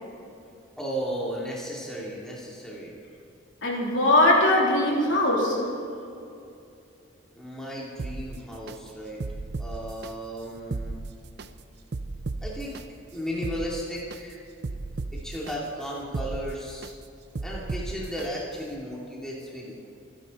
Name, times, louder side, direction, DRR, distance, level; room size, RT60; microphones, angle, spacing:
voice 1, 0.8-3.0 7.3-9.2 9.6-11.0 12.4-12.8 13.1-14.4 15.1-16.9 17.4-19.9, equal, 5° left, -5 dB, 2.4 m, -35 dB
voice 2, 3.6-5.7, left 1 dB, 65° left, -3 dB, 3.4 m, -21 dB
sound 1, 8.0-8.8 9.2-10.1 10.6-11.5 11.9-12.8 13.3-14.2 14.6-15.5 16.0-16.9 17.4-18.3 18.7-18.8, right 3 dB, 55° right, 0.5 m, -34 dB
25.5 x 10.5 x 4.1 m, 2.6 s
head